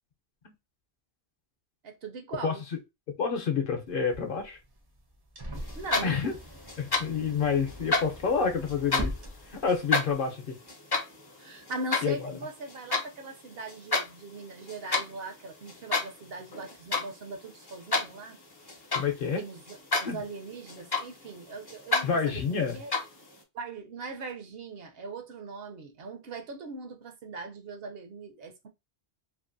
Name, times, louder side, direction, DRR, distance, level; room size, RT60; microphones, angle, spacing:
voice 1, 1.8-2.6 5.8-6.2 11.4-18.4 19.2-22.9 23.5-28.7, right 3 dB, 70° right, 0.8 m, -40 dB
voice 2, 3.2-4.6 6.0-6.3 6.8-9.1 9.5-10.4 12.0-12.2 18.9-19.4 19.9-20.2 22.0-22.8, left 6 dB, 60° left, 0.7 m, -28 dB
sound 1, 3.9-10.1, equal, 30° right, 0.5 m, -41 dB
sound 2, 5.7-6.4 6.7-7.3 7.6-9.2 9.7-13.1 13.5-14.1 14.4-15.1 15.7-16.3 16.5-17.1 17.4-19.3 19.7-20.2 20.5-21.4 21.7-22.1 22.7-23.2, left 3 dB, 30° left, 0.5 m, -29 dB
2.6 x 2.5 x 2.5 m
omnidirectional pair, 1.1 m